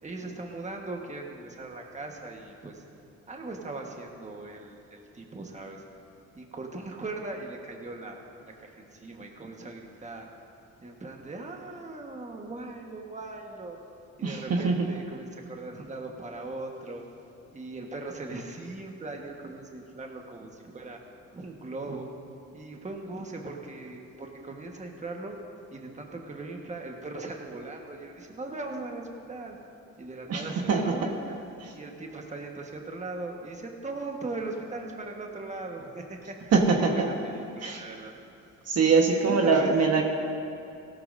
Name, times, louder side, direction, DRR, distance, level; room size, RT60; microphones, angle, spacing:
voice 1, 0.0-2.8 3.3-5.8 6.3-10.3 10.8-13.8 14.2-17.0 17.5-21.0 21.3-22.1 22.5-25.4 25.7-29.6 30.0-31.4 31.7-36.3 36.8-38.1 39.3-39.7, right 2 dB, 25° right, 1 dB, 1.4 m, -39 dB
voice 2, 14.2-14.9 30.3-30.8 36.5-37.1 37.6-37.8 38.7-40.0, right 4 dB, 55° right, 1 dB, 1.3 m, -23 dB
16.5 x 13.0 x 2.6 m, 2.7 s
cardioid pair, 90°, 30 cm